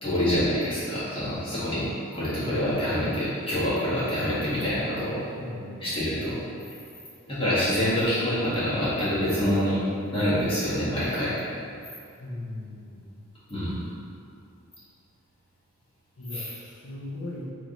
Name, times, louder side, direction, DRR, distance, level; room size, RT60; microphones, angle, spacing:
voice 1, 0.0-1.9 2.1-5.2 5.8-6.3 7.3-9.8 10.1-11.3 13.5-13.7 16.3-16.5, equal, 25° left, -12 dB, 1.4 m, -26 dB
voice 2, 5.4-6.0 12.2-13.0 16.2-17.4, left 2 dB, 80° left, -6 dB, 0.6 m, -38 dB
3.4 x 3.1 x 3.8 m, 2.5 s
head